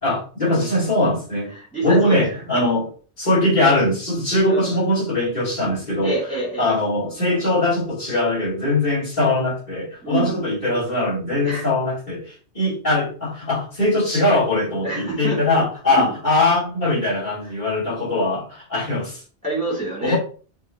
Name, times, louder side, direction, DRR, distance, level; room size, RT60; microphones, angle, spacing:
voice 1, 0.0-1.5 1.8-2.9 3.2-6.1 6.6-19.2 20.0-20.2, left 2 dB, 40° left, -8 dB, 2.8 m, -21 dB
voice 2, 1.5-2.2 4.5-4.8 6.0-6.7 10.0-10.4 11.4-11.7 14.8-15.4 15.9-16.1 19.4-20.2, right 2 dB, 5° left, -6 dB, 2.5 m, -26 dB
6.1 x 3.1 x 2.7 m, 0.39 s
omnidirectional pair, 1.1 m